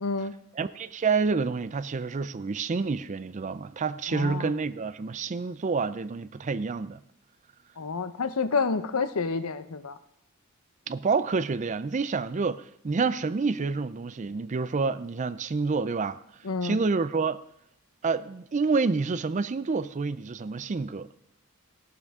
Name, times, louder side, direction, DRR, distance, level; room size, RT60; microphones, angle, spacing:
voice 1, 0.0-0.3 4.1-4.5 7.8-10.0 16.4-16.8, left 4 dB, 90° left, 0.8 m, -29 dB
voice 2, 0.6-7.0 10.9-16.2 16.6-17.4 18.0-21.1, right 4 dB, 35° right, 0.4 m, -28 dB
16.0 x 12.0 x 3.6 m
head